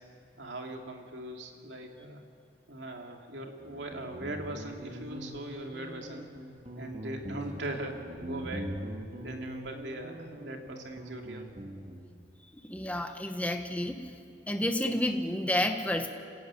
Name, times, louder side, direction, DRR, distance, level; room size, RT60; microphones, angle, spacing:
voice 1, 0.0-2.2 2.7-6.3 6.7-8.7 9.2-11.7, right 1 dB, 70° right, 2 dB, 2.9 m, -40 dB
Guitar, 3.6-12.1, equal, 35° right, 2.6 m, -42 dB
voice 2, 12.7-14.1 14.5-16.1, left 1 dB, 10° left, 5 dB, 1.2 m, -30 dB
27.5 x 16.5 x 9.1 m, 2.3 s
head